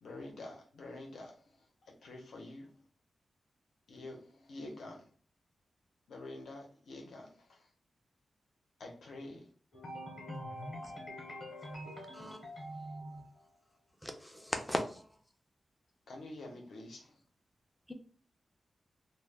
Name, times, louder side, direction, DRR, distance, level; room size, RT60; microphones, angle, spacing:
voice 1, 0.0-2.7 3.9-5.1 6.1-7.7 8.8-9.5 16.1-17.2, left 2 dB, 80° left, 0.6 m, -48 dB
voice 2, 9.7-13.6, equal, 35° left, 0.7 m, -45 dB
voice 3, 14.0-15.0 17.9-18.0, equal, 5° left, 0.3 m, -37 dB
2.1 x 2.1 x 3.2 m
wide cardioid pair, 175°, 0 cm